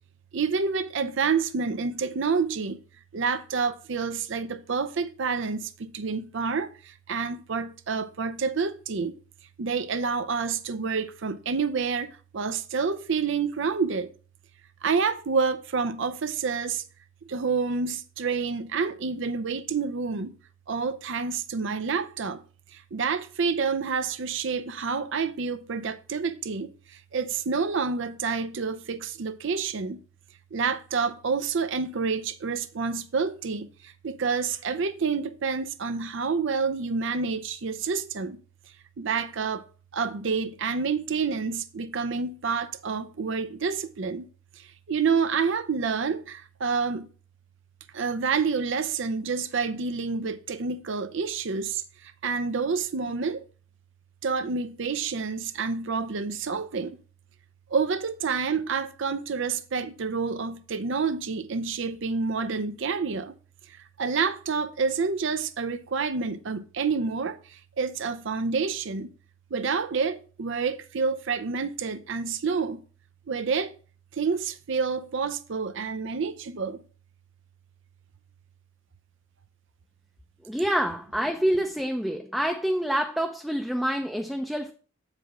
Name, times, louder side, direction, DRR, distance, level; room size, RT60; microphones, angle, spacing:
voice 1, 0.3-2.8 3.1-9.1 9.6-14.1 14.8-16.8 17.3-20.4 20.7-22.4 22.7-30.0 30.5-38.4 39.0-39.6 39.9-44.2 44.6-47.1 47.9-53.4 54.2-57.0 57.7-63.4 63.7-69.1 69.5-72.8 73.3-73.7 74.1-76.8, right 5 dB, 65° right, 0.6 m, -28 dB
voice 2, 80.4-84.7, equal, ahead, 0.5 m, -27 dB
7.7 x 4.9 x 5.0 m
head